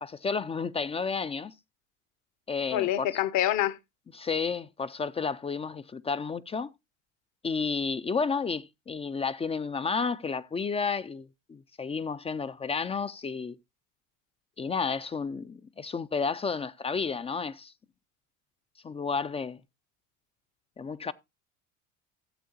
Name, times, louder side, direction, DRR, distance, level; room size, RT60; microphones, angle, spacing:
voice 1, 0.0-1.5 2.5-3.1 4.1-6.7 7.4-13.6 14.6-17.7 18.8-19.6 20.8-21.1, left 5 dB, 15° left, 0.5 m, -31 dB
voice 2, 2.7-3.8, left 13 dB, 50° left, 1.0 m, -26 dB
14.0 x 7.6 x 2.7 m
hypercardioid pair, 70°, 38 cm